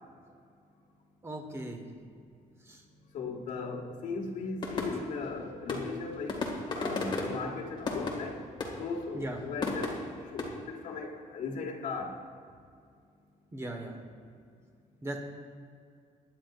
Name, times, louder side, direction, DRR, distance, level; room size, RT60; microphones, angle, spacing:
voice 1, 1.2-1.8 2.6-2.8 9.1-9.4 13.5-13.9 15.0-15.2, right 1 dB, 20° right, 2 dB, 1.6 m, -38 dB
voice 2, 3.1-6.5 6.7-8.4 8.8-10.0 10.3-12.2, left 4 dB, 70° left, 1 dB, 1.9 m, -37 dB
sound 1, 4.6-10.4, left 3 dB, 35° left, 2.0 m, -35 dB
21.5 x 10.0 x 2.6 m, 2.2 s
cardioid pair, 160°, 14 cm